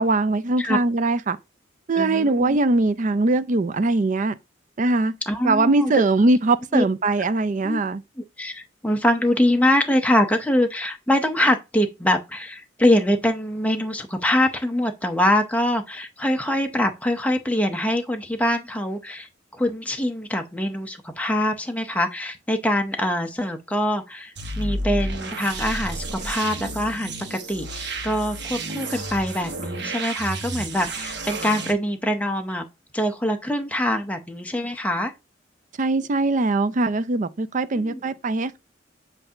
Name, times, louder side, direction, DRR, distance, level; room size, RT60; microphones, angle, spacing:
voice 1, 0.0-1.4 1.9-4.4 4.8-5.2 5.4-8.0 35.8-38.6, right 2 dB, 40° right, 0.5 m, -21 dB
voice 2, 2.0-2.6 5.3-6.0 6.7-6.8 7.6-7.8 8.2-19.3 19.5-32.6 32.9-35.1 37.7-38.0, left 1 dB, 10° left, 0.7 m, -24 dB
sound 1, 24.4-31.7, right 2 dB, 65° right, 1.2 m, -31 dB
7.9 x 2.7 x 5.6 m
head